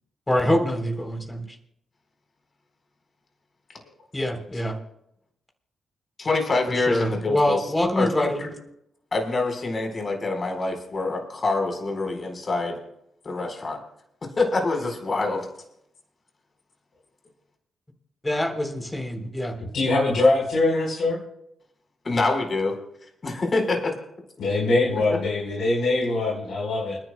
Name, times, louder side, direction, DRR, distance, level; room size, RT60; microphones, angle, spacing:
voice 1, 0.3-1.4 4.1-4.8 6.7-8.5 18.2-19.5, left 1 dB, 20° left, 3 dB, 3.5 m, -25 dB
voice 2, 6.2-7.6 8.0-8.5 9.1-12.8 13.2-13.8 14.4-15.5 22.0-22.8 23.2-23.9, left 3 dB, 45° left, 3 dB, 4.3 m, -25 dB
voice 3, 19.7-21.2 24.4-27.0, left 2 dB, 70° left, -3 dB, 4.2 m, -22 dB
29.5 x 10.5 x 2.2 m, 0.75 s
hypercardioid pair, 45°, 0 cm